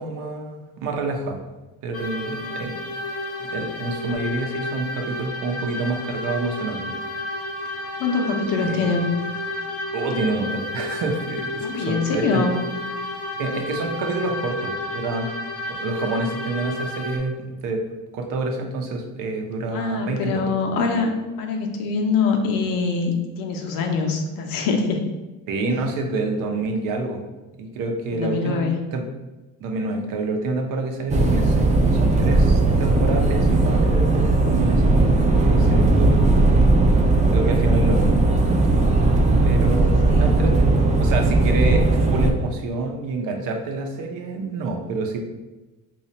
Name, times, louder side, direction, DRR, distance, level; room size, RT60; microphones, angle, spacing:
voice 1, 0.0-1.4 1.8-2.7 3.4-6.9 8.6-9.0 9.9-12.4 13.4-15.3 15.7-17.8 18.1-20.5 25.5-27.2 27.6-28.6 28.9-29.0 29.6-31.7 32.0-36.1 37.3-38.2 39.5-45.2, right 3 dB, 70° right, 3 dB, 0.7 m, -27 dB
sound 1, 1.9-17.2, left 1 dB, 45° left, 0.7 m, -31 dB
voice 2, 8.0-9.1 11.6-12.6 19.7-21.1 21.4-25.0 25.7-25.8 28.1-28.8 40.1-40.4, left 4 dB, 80° left, 3 dB, 0.7 m, -24 dB
sound 2, 31.1-42.3, right 2 dB, 20° right, 0.4 m, -18 dB
2.8 x 2.4 x 4.2 m, 1.1 s
cardioid pair, 110°, 33 cm